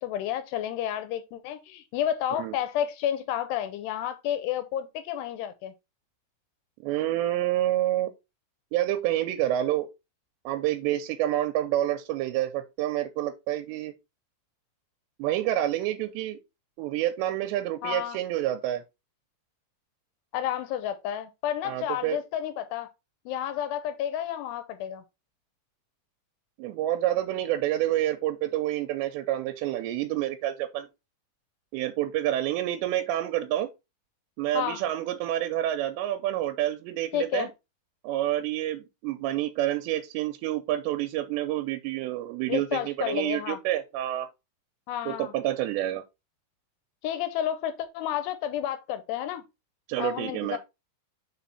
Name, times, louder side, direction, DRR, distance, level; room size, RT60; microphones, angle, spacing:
voice 1, 0.0-5.7 17.8-18.2 20.3-22.9 23.3-25.0 34.5-34.8 37.1-37.5 42.5-43.6 44.9-45.3 47.0-49.4 50.0-50.6, left 10 dB, 80° left, 2.6 m, -31 dB
voice 2, 6.8-8.1 8.7-9.9 10.5-13.9 15.2-16.4 16.8-18.8 21.6-22.2 26.6-30.9 31.7-33.7 34.4-37.5 38.0-44.3 45.1-46.0 49.9-50.6, right 13 dB, 85° right, 2.8 m, -28 dB
6.0 x 4.2 x 4.0 m
omnidirectional pair, 5.0 m